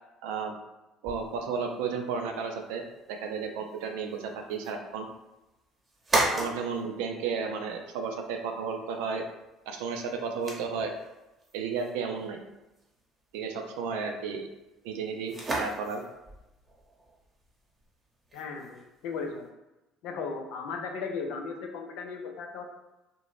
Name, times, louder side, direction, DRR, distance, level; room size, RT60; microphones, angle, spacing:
voice 1, 0.2-0.5 1.0-2.8 3.1-5.1 6.2-9.2 9.7-10.9 11.5-12.4 13.3-14.5 14.8-16.0, right 5 dB, 75° right, 4 dB, 0.4 m, -33 dB
sound 1, 1.0-19.5, right 1 dB, 30° right, 0.9 m, -38 dB
voice 2, 18.3-19.5 20.0-22.7, left 4 dB, 70° left, 3 dB, 0.4 m, -36 dB
2.6 x 2.1 x 3.1 m, 1.0 s
hypercardioid pair, 60°, 0 cm